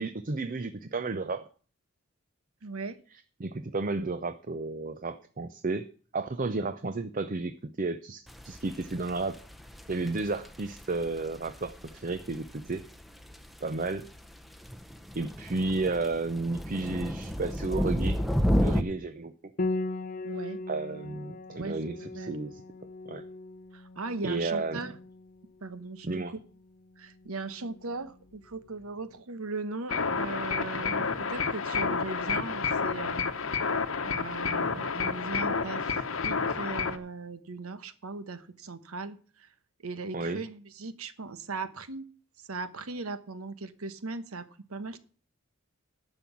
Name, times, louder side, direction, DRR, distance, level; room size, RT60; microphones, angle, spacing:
voice 1, 0.0-1.4 3.4-5.9 6.1-9.4 9.9-12.8 13.6-14.0 15.2-18.2 18.6-19.5 20.7-22.6 23.1-23.2 24.2-24.8 26.0-26.3 40.1-40.4, right 3 dB, 40° right, 11 dB, 0.6 m, -32 dB
voice 2, 2.6-3.0 20.2-20.6 21.6-22.4 23.7-24.9 25.6-26.4 27.0-33.3 33.6-33.7 34.0-39.5 39.8-42.1 42.5-45.0, right 3 dB, 80° right, 13 dB, 1.1 m, -38 dB
sound 1, 8.3-18.8, equal, ahead, 0.7 m, -32 dB
Piano, 19.6-28.9, left 2 dB, 40° left, 0.6 m, -39 dB
sound 2, 29.9-37.0, left 5 dB, 65° left, 1.0 m, -30 dB
11.0 x 6.1 x 8.4 m, 0.40 s
head